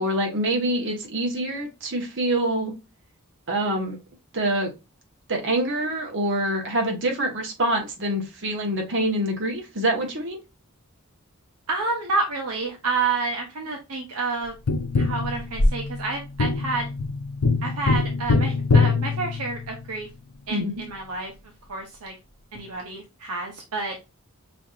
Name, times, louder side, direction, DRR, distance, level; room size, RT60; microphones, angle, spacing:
voice 1, 0.0-2.7 3.5-4.0 4.3-4.7 5.3-10.4 20.5-20.7, right 1 dB, 55° right, 2 dB, 1.3 m, -25 dB
voice 2, 11.7-14.6 15.0-16.9 17.6-20.1 20.5-21.3 21.7-22.1 22.5-23.9, right 3 dB, 75° right, 2 dB, 0.9 m, -29 dB
Tap, 14.7-20.0 22.6-22.7, left 3 dB, 80° left, 0.6 m, -23 dB
5.6 x 2.8 x 2.4 m, 0.25 s
head